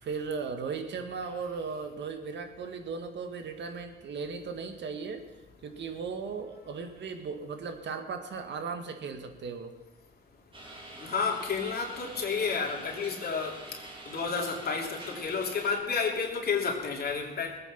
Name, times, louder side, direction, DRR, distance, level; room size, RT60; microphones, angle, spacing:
voice 1, 0.0-5.3 5.6-9.7, right 5 dB, 65° right, 7 dB, 1.9 m, -37 dB
sound 1, 10.5-15.8, right 2 dB, 25° right, 3.2 m, -46 dB
voice 2, 11.0-13.6 14.0-17.6, left 5 dB, 50° left, 0 dB, 3.2 m, -31 dB
20.0 x 9.0 x 6.0 m, 1.2 s
cardioid pair, 90°, 20 cm